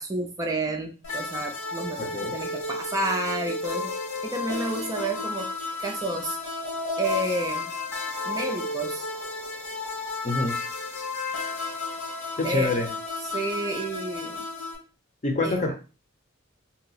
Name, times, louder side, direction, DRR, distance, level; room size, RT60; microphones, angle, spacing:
voice 1, 0.0-3.9 4.2-5.5 5.8-6.4 7.0-7.7 8.2-9.1 12.4-12.7 13.2-14.4 15.4-15.7, right 2 dB, 15° right, 2 dB, 0.4 m, -30 dB
sound 1, 1.0-14.7, left 3 dB, 75° left, 1.0 m, -33 dB
voice 2, 2.0-2.3 10.2-10.5 12.4-12.9 15.2-15.7, left 2 dB, 35° left, 3 dB, 0.7 m, -26 dB
2.7 x 2.0 x 4.0 m, 0.34 s
head